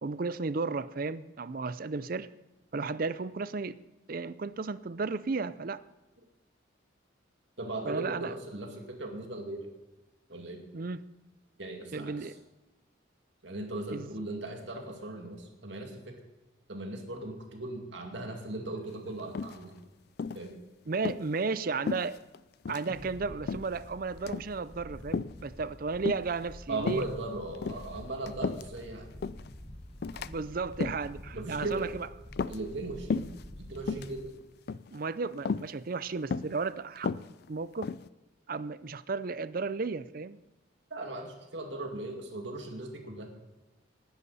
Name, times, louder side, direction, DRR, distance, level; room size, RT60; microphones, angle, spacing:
voice 1, 0.0-2.3 2.7-3.8 4.1-5.8 7.8-8.3 10.7-11.0 11.9-12.3 13.9-14.1 20.9-22.2 22.7-27.0 30.2-32.1 34.9-37.1 37.5-37.9 38.5-40.4, right 4 dB, 45° right, 16 dB, 0.5 m, -34 dB
voice 2, 7.6-9.7 10.3-10.6 11.6-12.1 13.4-16.2 16.7-19.7 20.3-20.6 22.9-23.0 26.7-29.1 31.3-31.9 32.5-33.3 33.6-34.3 40.9-43.3, right 2 dB, 65° right, 3 dB, 2.3 m, -38 dB
sound 1, 19.3-19.8 20.2-20.5 20.9-21.2 21.9-22.4 22.6-22.9 23.5-23.8 24.2-24.5 25.1-25.4 26.1-26.4 26.8-27.1 27.5-28.8 29.2-29.5 30.0-30.3 30.7-31.1 31.6-31.9 32.3-32.8 33.1-33.4 33.8-34.1 34.7-35.0 35.5-35.7 36.3-36.6 37.0-38.1, left 5 dB, 50° left, 0.3 m, -34 dB
Wind, 22.9-34.2, left 1 dB, 30° left, 1.3 m, -48 dB
19.0 x 10.5 x 4.2 m, 1.1 s
head